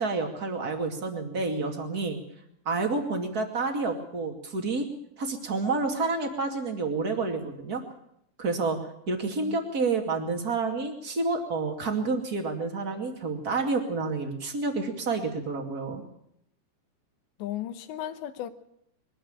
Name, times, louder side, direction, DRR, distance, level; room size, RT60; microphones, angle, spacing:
voice 1, 0.0-2.2 2.7-4.9 5.2-7.8 8.4-8.8 9.1-16.0, right 3 dB, 30° right, 1.9 m, -29 dB
voice 2, 17.4-18.5, left 12 dB, 85° left, 3.3 m, -35 dB
22.0 x 13.5 x 8.9 m
omnidirectional pair, 5.1 m